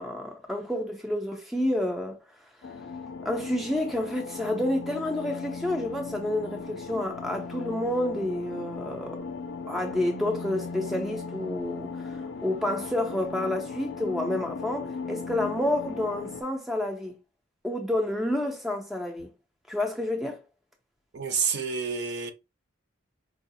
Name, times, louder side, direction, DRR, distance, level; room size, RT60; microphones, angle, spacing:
voice 1, 0.0-2.2 3.2-9.3 9.7-17.2 17.6-19.3 19.7-20.4, left 1 dB, ahead, 0.4 m, -29 dB
sound 1, 2.6-16.4, left 4 dB, 70° left, 0.4 m, -37 dB
voice 2, 21.1-22.3, right 6 dB, 55° right, 0.6 m, -28 dB
4.6 x 2.1 x 2.6 m
head